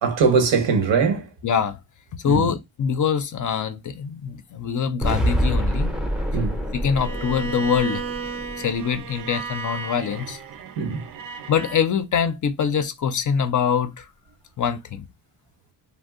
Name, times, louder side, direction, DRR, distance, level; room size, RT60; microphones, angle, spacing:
voice 1, 0.0-1.3 2.2-2.5 6.3-6.6 10.8-11.1, right 5 dB, 75° right, 1.0 m, -21 dB
voice 2, 1.4-1.8 2.2-5.9 6.7-8.0 8.6-10.4 11.5-14.1 14.6-15.1, left 7 dB, 45° left, 0.5 m, -24 dB
sound 1, 5.0-9.2, equal, ahead, 0.5 m, -26 dB
Bowed string instrument, 7.0-11.9, right 5 dB, 50° right, 0.5 m, -34 dB
2.6 x 2.0 x 3.6 m
cardioid pair, 85°, 44 cm